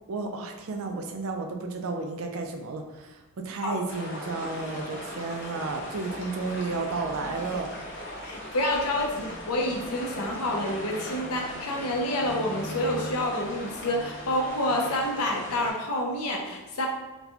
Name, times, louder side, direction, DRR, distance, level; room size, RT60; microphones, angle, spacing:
voice 1, 0.1-7.7, right 3 dB, 70° right, 4 dB, 0.4 m, -32 dB
sound 1, 3.9-15.7, left 1 dB, 50° left, 0.9 m, -38 dB
voice 2, 8.2-16.9, left 1 dB, 85° left, 1 dB, 0.7 m, -28 dB
4.1 x 2.2 x 2.8 m, 1.1 s
head